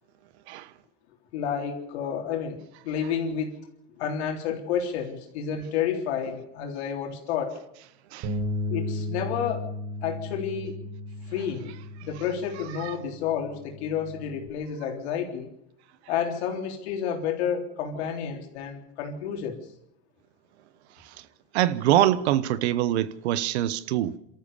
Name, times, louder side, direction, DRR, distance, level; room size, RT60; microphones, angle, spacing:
voice 1, 1.3-3.6 4.0-7.6 8.7-9.7 10.0-10.8 11.3-11.8 12.0-15.5 16.1-19.6, left 8 dB, 85° left, 3.7 m, -30 dB
Bass guitar, 8.2-14.5, left 1 dB, 65° right, 4.4 m, -35 dB
voice 2, 21.5-24.2, right 13 dB, 90° right, 1.1 m, -24 dB
28.0 x 13.5 x 6.9 m
supercardioid pair, 95°, 32 cm